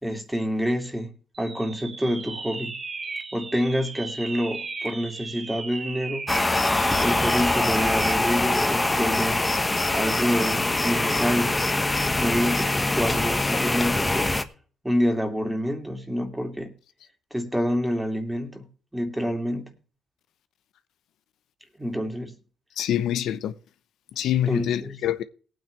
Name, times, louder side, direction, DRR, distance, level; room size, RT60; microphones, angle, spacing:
voice 1, 0.0-2.8 3.3-6.3 7.0-9.4 9.9-11.6 12.2-14.4 14.8-16.7 17.3-18.7 18.9-19.7 21.8-22.4 24.5-25.0, equal, 5° right, 2.6 m, -27 dB
sound 1, 1.3-8.3, right 3 dB, 35° right, 2.0 m, -36 dB
sound 2, 6.3-14.4, left 2 dB, 15° left, 1.3 m, -23 dB
voice 2, 22.8-23.5 24.2-25.2, left 11 dB, 80° left, 0.8 m, -25 dB
18.5 x 9.2 x 3.3 m
cardioid pair, 90°, 0 cm